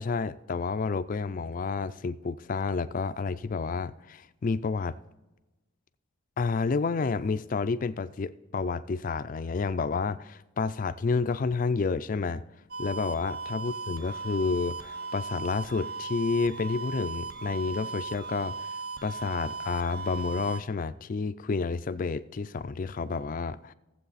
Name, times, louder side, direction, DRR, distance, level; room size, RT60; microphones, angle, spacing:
voice 1, 0.0-4.9 6.4-12.4 12.8-18.7 19.0-23.7, left 4 dB, 40° left, 0.4 m, -30 dB
sound 1, 12.7-20.6, right 4 dB, 50° right, 0.7 m, -37 dB
17.0 x 7.6 x 4.1 m
head